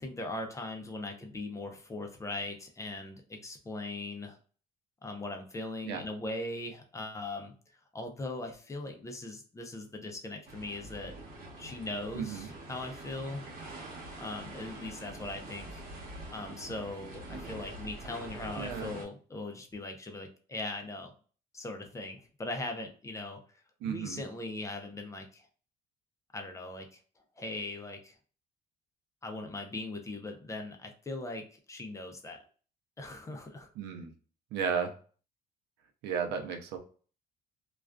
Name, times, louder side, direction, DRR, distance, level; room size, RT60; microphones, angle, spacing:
voice 1, 0.0-4.4 5.0-7.5 7.9-11.1 11.6-13.4 14.2-15.8 16.3-21.1 21.5-23.4 23.8-25.5 26.3-27.0 27.4-28.1 29.2-32.4 33.0-33.7, left 2 dB, 20° left, 3 dB, 0.5 m, -40 dB
sound 1, 10.4-19.0, right 2 dB, 55° right, 1.1 m, -45 dB
voice 2, 12.1-12.5 18.6-18.9 23.8-24.2 33.8-34.1 34.5-34.9 36.0-36.8, right 6 dB, 85° right, 5 dB, 0.5 m, -34 dB
2.3 x 2.3 x 2.2 m, 0.40 s
cardioid pair, 110°, 17 cm